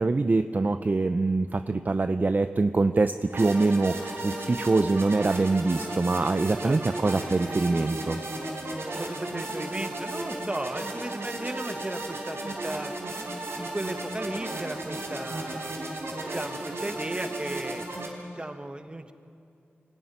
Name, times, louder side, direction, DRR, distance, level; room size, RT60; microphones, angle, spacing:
voice 1, 0.0-8.2, right 3 dB, 40° right, 9 dB, 0.6 m, -24 dB
sound 1, 3.3-18.1, right 1 dB, 75° right, 4.5 m, -34 dB
voice 2, 9.0-12.9 13.6-15.7 16.3-17.8 18.3-19.1, right 1 dB, 25° right, 7 dB, 1.5 m, -35 dB
24.5 x 14.0 x 9.8 m, 2.5 s
wide cardioid pair, 70°, 4 cm